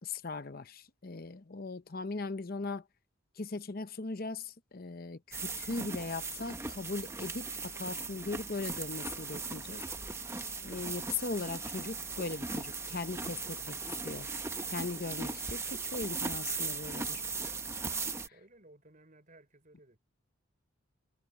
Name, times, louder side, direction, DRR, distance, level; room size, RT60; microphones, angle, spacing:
voice 1, 0.0-2.8 3.4-9.8 10.6-14.3 14.7-17.2, left 3 dB, 45° left, 0.8 m, -39 dB
sound 1, 5.3-18.3, right 4 dB, 15° right, 0.8 m, -38 dB
voice 2, 18.2-20.0, right 2 dB, 40° right, 4.6 m, -59 dB
head